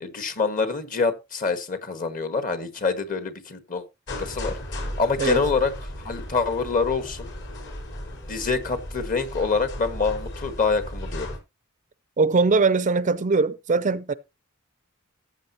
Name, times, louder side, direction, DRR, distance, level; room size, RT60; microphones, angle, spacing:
voice 1, 0.0-3.8 4.2-4.6 5.0-5.7 6.0-7.3 8.3-11.3, left 4 dB, 40° left, 1.6 m, -26 dB
sound 1, 4.1-11.4, left 1 dB, 60° left, 5.1 m, -35 dB
voice 2, 12.2-14.1, right 4 dB, 35° right, 0.5 m, -21 dB
14.5 x 8.5 x 2.9 m
head